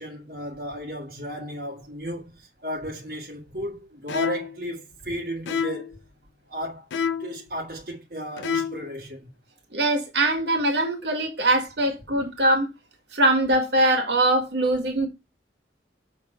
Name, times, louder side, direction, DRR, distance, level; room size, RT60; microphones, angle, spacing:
voice 1, 0.0-6.0 6.5-6.9 7.2-9.3, equal, 55° right, 1.5 m, -34 dB
sound 1, 4.1-4.6 5.5-5.9 6.9-7.4 8.4-8.9, left 6 dB, 85° left, 0.5 m, -28 dB
voice 2, 9.7-12.7 13.1-15.1, right 1 dB, 70° right, 1.9 m, -22 dB
6.3 x 3.5 x 4.4 m
head